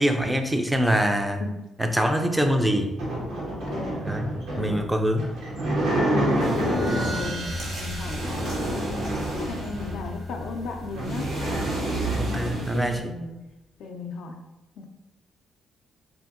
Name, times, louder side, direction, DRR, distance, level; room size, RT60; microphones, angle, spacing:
voice 1, 0.0-1.4 1.8-2.9 4.0-5.3 12.1-13.1, equal, 5° right, 5 dB, 0.3 m, -24 dB
sound 1, 2.3-7.4 8.0-10.1 10.5-10.6 10.8-12.7, right 1 dB, 85° right, 0.9 m, -28 dB
voice 2, 3.5-4.1 4.5-4.8 6.0-8.2 8.7-13.3 13.8-14.4 14.8-14.9, left 4 dB, 75° left, 3 dB, 0.3 m, -35 dB
sound 2, 6.1-13.1, equal, 50° right, 0.7 m, -38 dB
sound 3, 6.4-13.0, right 2 dB, 70° right, 1.3 m, -36 dB
2.6 x 2.6 x 2.5 m, 0.99 s
cardioid pair, 90°, 0 cm